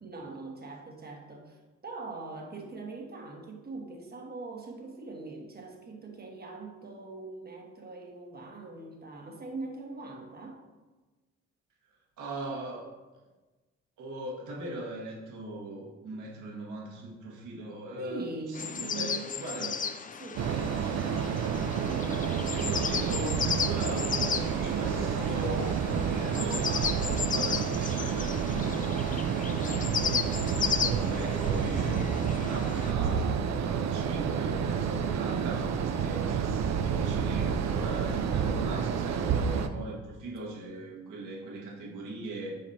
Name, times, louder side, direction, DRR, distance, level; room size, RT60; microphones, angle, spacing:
voice 1, 0.0-10.6 18.0-19.3 19.6-19.8 20.2-20.5 38.3-38.6, right 3 dB, 30° right, 1 dB, 1.4 m, -42 dB
voice 2, 12.2-12.9 14.0-18.3 18.6-19.8 22.2-42.5, right 1 dB, 80° right, -3 dB, 1.8 m, -40 dB
sound 1, 18.5-32.9, left 6 dB, 25° left, 0.4 m, -35 dB
sound 2, 20.4-39.7, right 7 dB, 60° right, 0.6 m, -29 dB
8.6 x 5.0 x 2.8 m, 1.2 s
cardioid pair, 90°, 30 cm